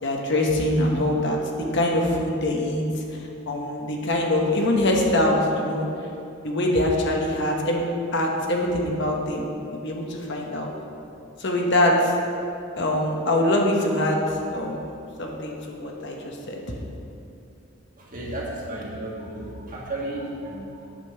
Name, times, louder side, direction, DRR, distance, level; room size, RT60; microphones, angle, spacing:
voice 1, 0.0-5.9 6.4-7.8 8.1-10.7 11.4-12.1 12.8-14.8 15.2-16.8, left 1 dB, 60° left, 0 dB, 1.2 m, -24 dB
voice 2, 18.0-20.9, right 1 dB, 40° right, -4 dB, 1.8 m, -33 dB
9.1 x 5.3 x 6.7 m, 2.6 s
head